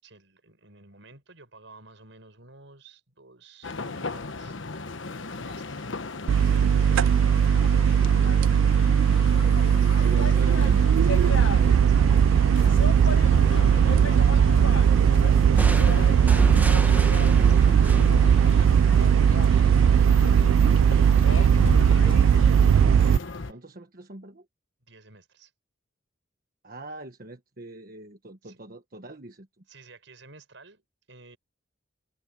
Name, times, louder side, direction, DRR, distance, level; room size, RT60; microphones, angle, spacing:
voice 1, 0.0-8.9 9.6-10.7 11.9-12.1 16.8-22.0 23.2-23.6 24.9-25.5 28.4-28.6 29.7-31.4, right 3 dB, 70° right, 7.2 m, -53 dB
sound 1, 3.6-23.5, left 3 dB, 75° left, 1.1 m, -34 dB
sound 2, 6.3-23.2, right 8 dB, 85° right, 0.3 m, -19 dB
voice 2, 8.8-9.2 9.8-10.8 14.9-16.6 23.5-24.5 26.6-29.6, right 2 dB, 50° right, 1.4 m, -43 dB
sound 3, 15.6-19.2, right 1 dB, 10° right, 1.4 m, -32 dB
head